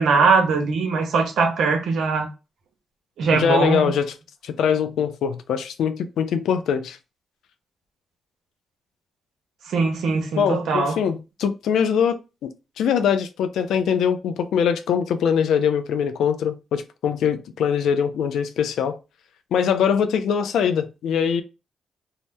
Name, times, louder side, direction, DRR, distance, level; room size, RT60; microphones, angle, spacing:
voice 1, 0.0-2.3 3.2-3.9 9.7-11.0, right 4 dB, 80° right, 0.8 m, -21 dB
voice 2, 3.3-4.1 4.4-7.0 10.4-12.2 12.4-19.0 19.5-21.4, left 7 dB, 85° left, 0.4 m, -22 dB
2.7 x 2.0 x 3.3 m
cardioid pair, 70°, 0 cm